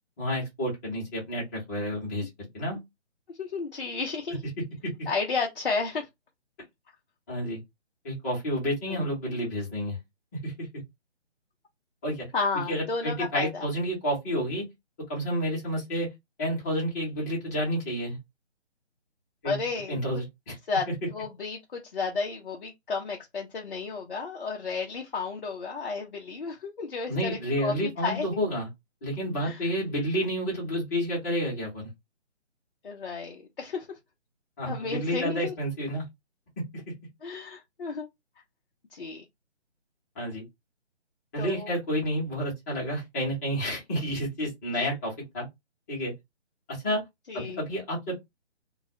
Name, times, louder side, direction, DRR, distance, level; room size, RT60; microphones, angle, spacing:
voice 1, 0.2-2.8 4.8-4.9 7.3-7.6 8.0-10.0 10.4-10.7 12.0-12.3 12.7-14.6 15.1-16.1 16.4-18.2 19.4-19.6 19.9-20.6 27.1-28.7 29.0-31.9 34.6-36.1 36.6-36.8 40.2-40.4 41.3-45.5 45.9-46.1 46.7-47.0 47.3-48.2, equal, 15° left, 0.9 m, -30 dB
voice 2, 3.4-4.4 5.1-6.1 8.9-9.1 12.3-13.7 19.4-20.0 20.7-28.3 29.4-29.7 32.8-34.0 34.6-35.5 37.2-38.1 38.9-39.2 41.4-41.7 47.3-47.6, left 4 dB, 50° left, 0.6 m, -32 dB
2.3 x 2.0 x 2.7 m
figure-of-eight pair, 155°, 35 cm